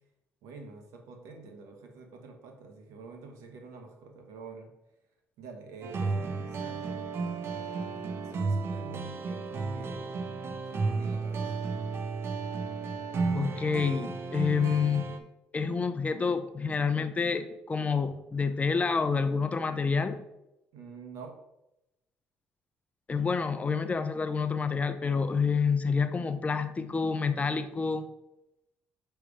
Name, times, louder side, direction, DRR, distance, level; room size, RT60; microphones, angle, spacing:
voice 1, 0.4-4.7 5.4-7.0 7.4-10.2 10.7-11.5 20.7-21.4, right 4 dB, 80° right, 4 dB, 1.3 m, -47 dB
sound 1, 5.8-15.2, right 4 dB, 55° right, 0.8 m, -33 dB
voice 2, 13.3-15.2 15.5-20.2 23.1-28.0, left 5 dB, 30° left, 10 dB, 0.6 m, -28 dB
6.4 x 3.4 x 4.9 m, 0.89 s
supercardioid pair, 80°, 5 cm